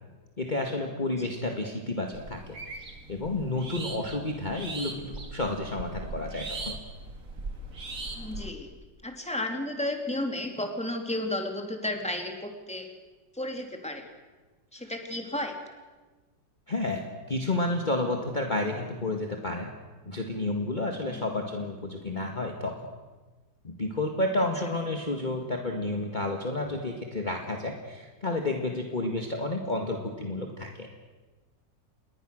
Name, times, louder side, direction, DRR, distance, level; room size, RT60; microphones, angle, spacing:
voice 1, 0.4-2.6 2.9-6.8 16.7-19.7 20.1-22.9 23.6-30.9, left 2 dB, 25° left, 2 dB, 2.0 m, -31 dB
sound 1, 2.1-8.5, right 3 dB, 45° right, 2.7 m, -40 dB
voice 2, 8.2-8.7 9.0-12.9 13.3-14.1 14.7-15.6 21.1-21.2, left 1 dB, 5° left, 4 dB, 2.7 m, -33 dB
28.0 x 21.0 x 6.5 m, 1.3 s
omnidirectional pair, 1.9 m